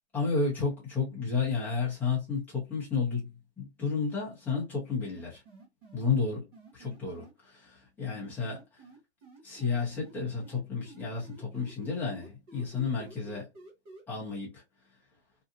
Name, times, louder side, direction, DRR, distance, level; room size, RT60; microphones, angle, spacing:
voice 1, 0.1-3.3 3.6-5.4 5.9-6.4 6.7-8.6 9.4-13.5 14.1-14.6, left 5 dB, 5° left, 0.8 m, -31 dB
sound 1, 5.0-7.3 8.1-10.1 10.4-14.0, right 2 dB, 20° right, 0.9 m, -51 dB
2.8 x 2.3 x 2.6 m
hypercardioid pair, 145°, 34 cm